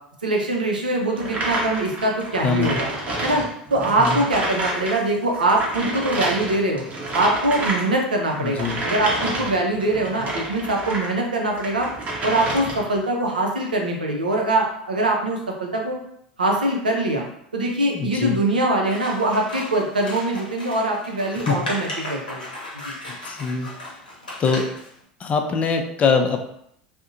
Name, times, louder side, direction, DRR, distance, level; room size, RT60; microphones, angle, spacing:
voice 1, 0.2-2.9 3.2-3.4 3.7-6.8 7.1-11.9 12.2-16.0 16.4-17.3 17.5-22.4 22.8-22.9, right 2 dB, 85° right, 0 dB, 0.5 m, -23 dB
sound 1, 1.2-5.0 5.2-11.1 11.5-13.0, right 1 dB, 35° right, 0.7 m, -29 dB
voice 2, 2.4-2.8 4.0-4.3 8.3-8.8 17.8-18.4 21.5-21.6 23.2-23.7 24.4-24.6 25.2-26.4, left 5 dB, 30° left, 5 dB, 0.4 m, -23 dB
Scissors, 18.8-24.9, left 1 dB, 85° left, 0.7 m, -35 dB
2.6 x 2.1 x 2.5 m, 0.72 s
figure-of-eight pair, 75°, 5 cm